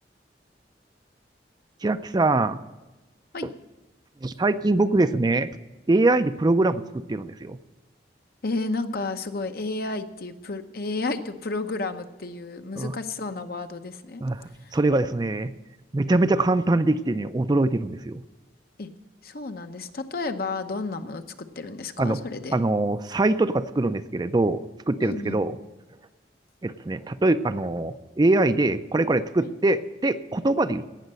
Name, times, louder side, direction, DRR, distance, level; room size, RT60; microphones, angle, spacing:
voice 1, 1.8-2.6 4.2-5.5 5.9-7.6 12.8-12.9 14.2-15.5 15.9-18.2 22.0-22.2 22.5-25.6 26.6-30.9, right 2 dB, 25° right, 11 dB, 0.4 m, -23 dB
voice 2, 8.4-14.2 14.5-14.8 18.8-18.9 19.2-21.2 21.6-22.6 25.0-25.4 29.4-29.5, left 3 dB, 60° left, 8 dB, 0.8 m, -32 dB
17.5 x 6.5 x 7.6 m, 1.1 s
head